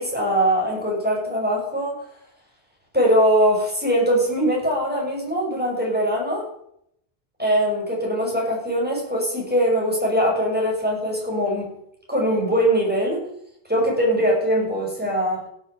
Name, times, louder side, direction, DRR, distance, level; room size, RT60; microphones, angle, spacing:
voice 1, 0.0-2.0 2.9-6.5 7.4-11.7 12.1-13.3 13.7-15.4, equal, 10° right, -2 dB, 6.5 m, -21 dB
16.5 x 8.1 x 7.3 m, 0.72 s
omnidirectional pair, 1.1 m